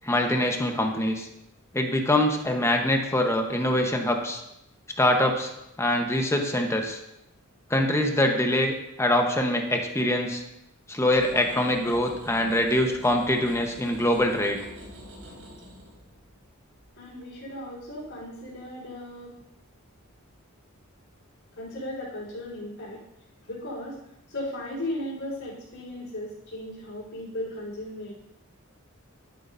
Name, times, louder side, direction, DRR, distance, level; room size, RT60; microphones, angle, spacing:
voice 1, 0.0-1.3 1.7-4.4 5.0-5.5 5.8-7.0 7.7-10.4 10.9-14.6, left 1 dB, 15° left, 3 dB, 1.1 m, -24 dB
sound 1, 11.1-19.3 19.8-20.3, equal, 70° right, 4.2 m, -47 dB
voice 2, 17.0-19.3 21.6-23.0 23.4-24.0 24.3-28.1, left 1 dB, 70° left, -10 dB, 4.1 m, -36 dB
11.5 x 9.9 x 2.7 m, 0.84 s
head